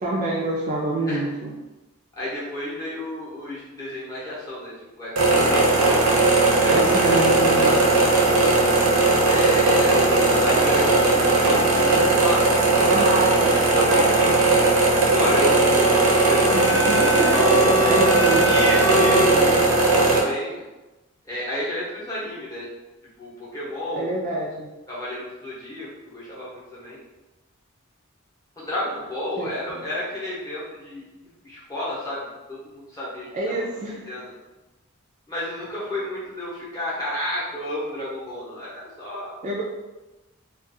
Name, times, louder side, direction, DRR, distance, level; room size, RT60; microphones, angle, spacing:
voice 1, 0.0-1.6 6.7-7.9 12.9-14.5 16.5-19.6 23.9-24.7 29.4-29.8 33.3-34.2 39.4-39.6, right 1 dB, 35° right, -3 dB, 0.3 m, -27 dB
voice 2, 2.2-4.7 5.0-5.9 6.4-7.8 9.2-12.5 12.9-13.2 13.7-14.1 15.1-16.0 16.2-17.2 18.5-19.8 20.1-20.6 21.3-22.6 23.2-24.2 24.9-27.0 28.6-31.1 31.4-33.6 34.1-34.3 35.3-39.3, left 1 dB, 15° left, -8 dB, 0.8 m, -31 dB
sound 1, 5.2-20.2, right 2 dB, 85° right, 0.6 m, -18 dB
sound 2, 15.8-19.3, equal, 50° left, 0.5 m, -25 dB
2.5 x 2.3 x 2.6 m, 1.1 s
head